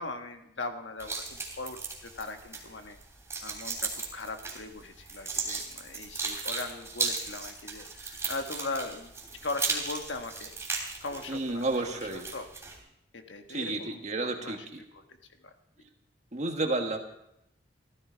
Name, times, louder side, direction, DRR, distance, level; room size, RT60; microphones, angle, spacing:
voice 1, 0.0-3.0 3.4-9.1 9.4-10.5 11.0-12.5 13.1-14.7 14.9-15.0 15.4-15.5, left 3 dB, 85° left, 6 dB, 1.4 m, -39 dB
sound 1, 1.0-12.8, right 4 dB, 15° right, 3.1 m, -37 dB
voice 2, 11.3-12.3 13.5-14.8 16.3-17.0, right 2 dB, 40° right, 4 dB, 1.6 m, -31 dB
15.5 x 14.0 x 4.5 m, 0.81 s
head